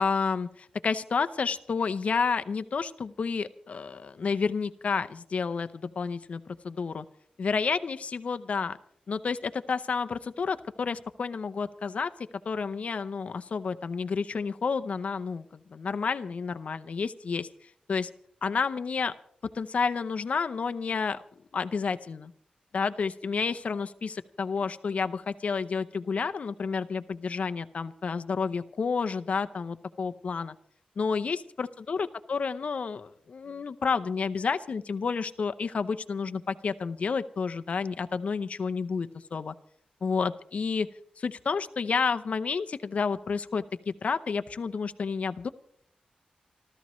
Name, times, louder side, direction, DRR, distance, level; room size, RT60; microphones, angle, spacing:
voice 1, 0.0-7.0 7.4-8.8 9.1-12.1 12.4-17.5 17.9-18.1 18.4-19.1 19.5-21.2 21.5-22.3 22.7-30.5 31.0-39.5 40.0-40.9 41.2-45.5, left 5 dB, 55° left, 10 dB, 0.7 m, -30 dB
28.5 x 13.0 x 3.1 m, 0.67 s
wide cardioid pair, 145°, 3 cm